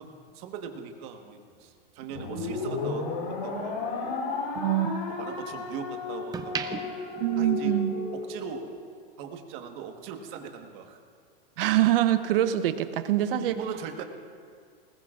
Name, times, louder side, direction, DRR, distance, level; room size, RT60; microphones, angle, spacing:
voice 1, 0.0-3.1 3.4-4.1 5.1-7.0 7.4-7.8 8.1-8.7 9.2-11.0 13.4-14.0, right 8 dB, 45° right, 4 dB, 1.5 m, -40 dB
sound 1, 1.5-3.8 4.2-5.7 6.1-8.2 8.5-8.8, right 7 dB, 15° right, 0.5 m, -40 dB
sound 2, 2.1-8.7, left 4 dB, 65° left, 3.6 m, -33 dB
voice 2, 4.5-5.0 7.2-8.0 11.6-13.6, right 12 dB, 70° right, 11 dB, 0.9 m, -25 dB
20.0 x 20.0 x 2.5 m, 2.2 s
supercardioid pair, 140°, 29 cm